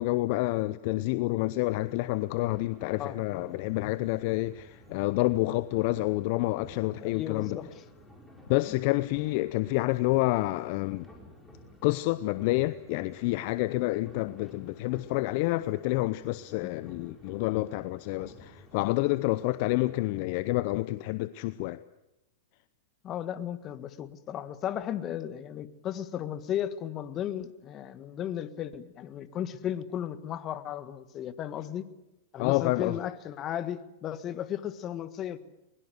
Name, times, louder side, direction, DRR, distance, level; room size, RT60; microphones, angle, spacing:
voice 1, 0.0-7.6 8.5-11.1 11.8-21.8 32.4-33.0, left 19 dB, 55° left, 0.7 m, -28 dB
sound 1, 1.7-20.2, left 1 dB, 5° left, 5.5 m, -53 dB
voice 2, 7.0-7.7 16.8-16.9 23.0-31.9 32.3-35.4, left 10 dB, 35° left, 1.6 m, -35 dB
22.0 x 22.0 x 8.0 m
hypercardioid pair, 110°, 0 cm